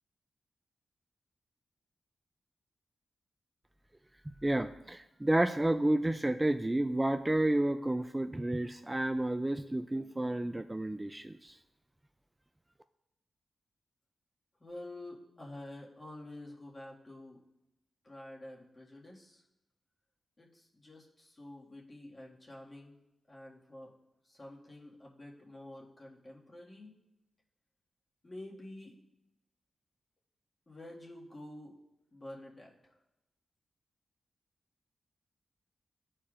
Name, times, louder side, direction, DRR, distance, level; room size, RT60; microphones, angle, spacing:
voice 1, 4.4-11.5, right 1 dB, 20° right, 9 dB, 0.3 m, -30 dB
voice 2, 14.6-17.4 18.0-19.4 20.4-23.0 23.3-23.9 24.2-27.0 28.2-29.0 30.7-31.8 32.1-33.0, left 1 dB, 35° left, -3 dB, 1.8 m, -49 dB
13.0 x 4.4 x 2.5 m, 0.91 s
cardioid pair, 60°, 0 cm